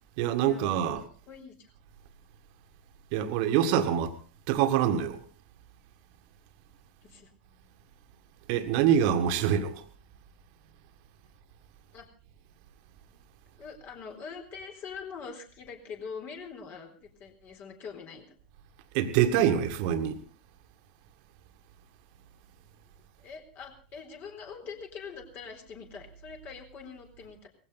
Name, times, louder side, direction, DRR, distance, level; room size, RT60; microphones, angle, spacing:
voice 1, 0.2-1.0 3.1-4.2 4.5-5.2 8.5-9.8 18.9-20.2, right 9 dB, 55° right, 1.8 m, -25 dB
voice 2, 1.3-1.7 7.0-7.3 11.9-12.1 13.6-18.3 23.2-27.5, left 6 dB, 40° left, 3.9 m, -43 dB
19.0 x 16.0 x 4.1 m
hypercardioid pair, 95°, 5 cm